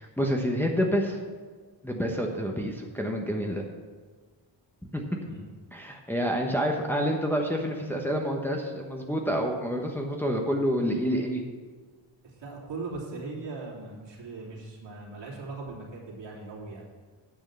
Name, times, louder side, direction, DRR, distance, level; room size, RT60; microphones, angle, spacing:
voice 1, 0.2-1.2 1.8-3.6 4.9-5.0 5.7-11.4, equal, 5° left, 0 dB, 1.1 m, -28 dB
voice 2, 12.2-16.9, right 3 dB, 70° right, -4 dB, 3.2 m, -39 dB
9.5 x 6.4 x 7.0 m, 1.4 s
wide cardioid pair, 120°, 45 cm